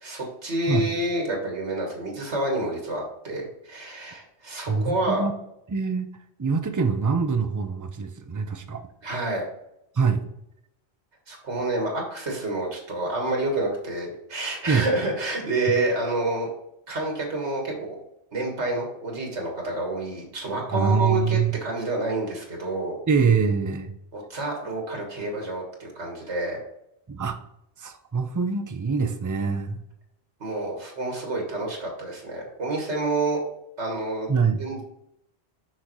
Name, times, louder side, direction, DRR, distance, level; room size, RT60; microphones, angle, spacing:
voice 1, 0.0-5.2 9.0-9.5 11.3-16.5 16.9-18.0 18.3-23.0 24.1-26.6 30.4-33.4 33.8-34.3 34.6-34.8, right 2 dB, 90° right, 0 dB, 1.9 m, -28 dB
voice 2, 4.7-5.3 5.7-6.1 6.4-8.8 9.9-10.2 14.7-14.9 20.7-21.6 23.1-23.9 27.1-27.4 27.8-29.8 34.3-34.6, right 5 dB, 25° right, 7 dB, 0.4 m, -24 dB
6.5 x 5.7 x 3.1 m, 0.81 s
omnidirectional pair, 1.1 m